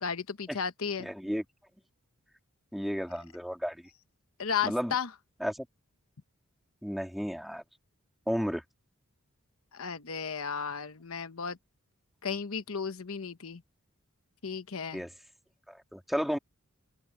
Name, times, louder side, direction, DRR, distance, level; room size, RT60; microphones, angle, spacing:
voice 1, 0.0-1.1 4.4-5.1 9.7-11.6 12.2-13.6 14.4-15.0, left 6 dB, 75° left, 1.0 m, -34 dB
voice 2, 1.0-1.4 2.7-3.8 4.6-4.9 5.4-5.7 6.8-7.6 8.3-8.6 14.9-15.1 15.7-16.4, equal, ahead, 2.9 m, -33 dB
open air
head